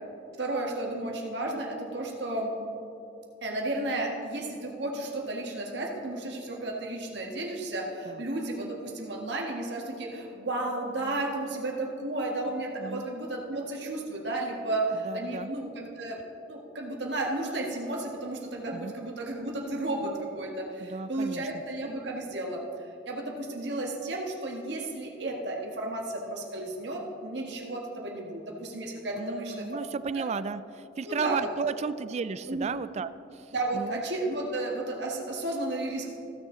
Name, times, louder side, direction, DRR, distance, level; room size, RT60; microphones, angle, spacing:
voice 1, 0.4-2.5 3.4-16.2 16.5-22.6 23.0-29.7 30.1-30.2 31.0-31.5 32.5-32.7 33.5-36.1, right 2 dB, 70° right, 0 dB, 1.6 m, -33 dB
voice 2, 15.0-15.5 18.7-18.9 20.8-21.5 29.1-34.0, right 5 dB, 40° right, 14 dB, 0.3 m, -34 dB
15.5 x 6.4 x 3.8 m, 2.7 s
head